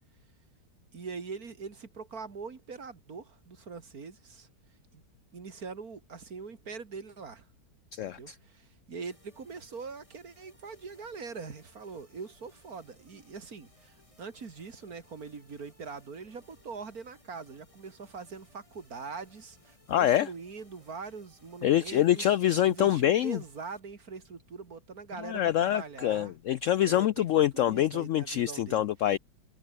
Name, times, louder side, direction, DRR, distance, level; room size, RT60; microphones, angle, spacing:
voice 1, 0.9-4.5 4.9-5.0 5.3-7.4 8.0-22.2 22.7-26.3 26.8-27.3 27.5-28.9, right 5 dB, 55° right, 2.8 m, -43 dB
voice 2, 7.9-8.4 19.9-20.3 21.6-23.4 25.2-29.2, left 11 dB, 85° left, 0.6 m, -25 dB
sound 1, 9.0-23.8, left 1 dB, 15° left, 4.1 m, -64 dB
omnidirectional pair, 1.9 m